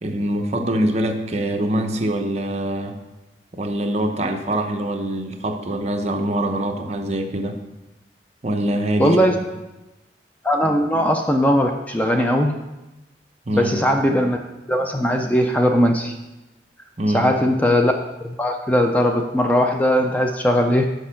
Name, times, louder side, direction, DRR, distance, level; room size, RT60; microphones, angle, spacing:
voice 1, 0.0-3.0 3.5-7.6 8.4-9.2 13.5-13.8 17.0-17.3, right 1 dB, 40° right, 4 dB, 0.7 m, -24 dB
voice 2, 9.0-9.4 10.4-12.6 13.6-14.4 14.7-16.1 17.1-17.9 18.2-20.9, equal, 10° left, 3 dB, 0.4 m, -19 dB
6.4 x 5.3 x 5.7 m, 1.0 s
head